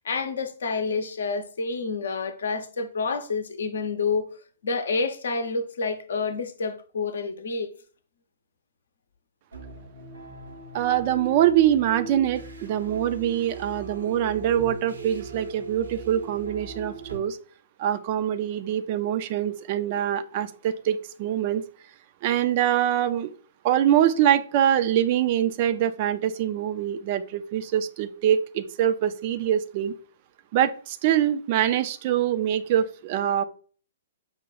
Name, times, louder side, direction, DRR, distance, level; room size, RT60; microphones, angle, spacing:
voice 1, 0.0-4.3 4.6-7.7, left 4 dB, 60° left, 0.6 m, -28 dB
sound 1, 9.5-17.2, right 4 dB, 70° right, 0.8 m, -39 dB
voice 2, 10.7-17.4 17.8-21.6 22.2-23.3 23.6-29.9 30.5-33.4, right 10 dB, 40° right, 0.4 m, -24 dB
5.6 x 2.2 x 4.2 m
figure-of-eight pair, 115°, 0 cm